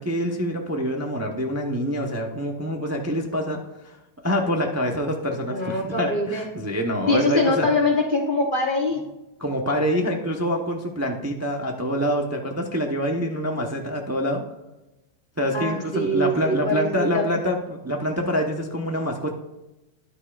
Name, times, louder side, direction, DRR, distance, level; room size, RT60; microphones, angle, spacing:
voice 1, 0.0-3.6 3.8-4.0 4.2-7.7 9.4-14.4 15.4-19.3, equal, 15° right, 1 dB, 0.7 m, -26 dB
voice 2, 5.5-6.5 7.1-9.0 15.5-17.3, left 2 dB, 35° left, 1 dB, 0.9 m, -23 dB
13.0 x 10.0 x 2.5 m, 0.96 s
omnidirectional pair, 1.9 m